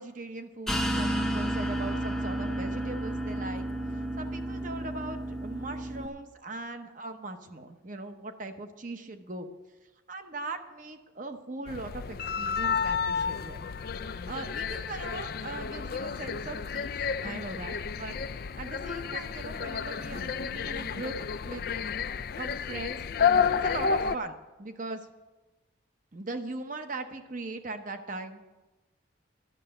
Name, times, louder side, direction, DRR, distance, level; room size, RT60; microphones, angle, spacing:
voice 1, 0.0-9.5 10.1-13.7 14.3-16.9 17.2-18.2 18.6-21.2 21.5-21.6 22.4-23.1 23.6-25.1 26.1-28.4, right 2 dB, 40° right, 7 dB, 0.8 m, -40 dB
sound 1, 0.7-6.1, right 1 dB, ahead, 0.8 m, -31 dB
sound 2, 11.7-24.2, left 6 dB, 50° left, 0.4 m, -31 dB
11.5 x 6.7 x 8.8 m, 1.2 s
head